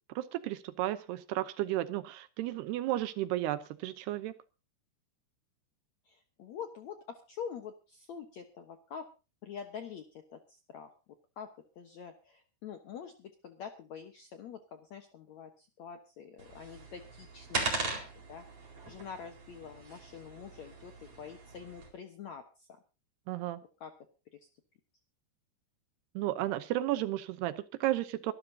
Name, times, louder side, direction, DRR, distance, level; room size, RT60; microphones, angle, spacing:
voice 1, 0.2-4.3 23.3-23.6 26.2-28.3, right 14 dB, 75° right, 13 dB, 2.8 m, -33 dB
voice 2, 6.1-9.1 9.4-10.9 11.4-18.0 18.3-22.7 23.8-23.9 24.3-24.4, left 7 dB, 70° left, 6 dB, 1.7 m, -46 dB
sound 1, 16.4-21.9, right 3 dB, 35° right, 5.0 m, -39 dB
24.0 x 13.0 x 2.8 m, 0.32 s
omnidirectional pair, 4.9 m